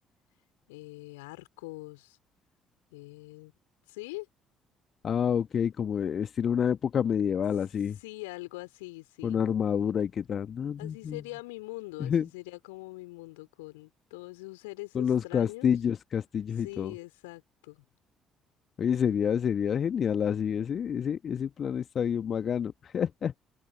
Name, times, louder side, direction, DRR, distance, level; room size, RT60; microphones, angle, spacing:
voice 1, 0.7-2.2 2.9-3.5 3.9-4.3 8.0-9.4 10.8-15.7 16.6-17.8, left 23 dB, 70° left, 4.0 m, -43 dB
voice 2, 5.0-8.0 9.2-11.2 12.0-12.3 14.9-16.9 18.8-23.3, left 8 dB, 45° left, 1.2 m, -28 dB
open air
figure-of-eight pair, 50°, 0 cm